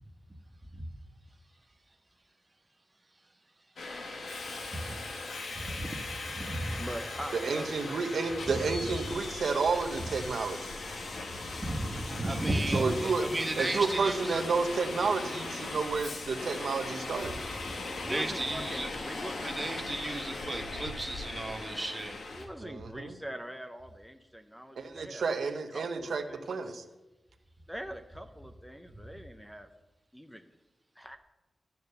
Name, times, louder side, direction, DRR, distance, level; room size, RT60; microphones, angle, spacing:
Subway metro underground, 3.8-22.5, left 3 dB, 80° left, 1.5 m, -39 dB
voice 1, 4.6-5.0 5.5-6.8 8.5-9.0 11.4-12.9 13.2-14.4 17.9-18.9 19.2-22.2, right 1 dB, 20° right, 3 dB, 1.3 m, -35 dB
voice 2, 5.6-5.9 6.8-8.1 12.7-13.3 14.3-14.4 18.0-19.5 22.3-25.3 25.7-26.8 27.7-29.7 30.1-30.5 31.0-31.2, equal, 5° left, 7 dB, 0.6 m, -43 dB
voice 3, 7.3-10.6 12.7-13.2 13.6-17.3 22.6-23.1 24.8-26.8, right 4 dB, 85° right, 6 dB, 0.9 m, -31 dB
10.5 x 6.9 x 6.8 m, 1.1 s
wide cardioid pair, 130°, 0 cm